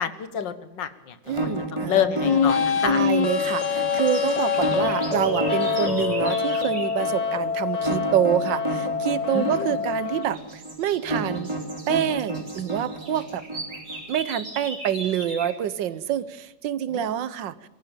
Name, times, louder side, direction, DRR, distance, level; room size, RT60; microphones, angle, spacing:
voice 1, 0.0-1.2 1.4-3.0 9.3-9.8 16.9-17.1, left 8 dB, 75° left, 12 dB, 2.0 m, -28 dB
sound 1, 1.3-14.2, right 2 dB, 15° right, 3.0 m, -31 dB
voice 2, 1.3-11.5 11.9-13.4 14.1-17.5, right 10 dB, 80° right, 16 dB, 1.6 m, -27 dB
sound 2, 2.2-10.2, left 6 dB, 35° left, 0.7 m, -25 dB
sound 3, 2.3-7.0 9.2-9.6 10.0-15.6, right 2 dB, 60° right, 5.2 m, -40 dB
22.0 x 15.0 x 9.0 m, 0.99 s
omnidirectional pair, 2.0 m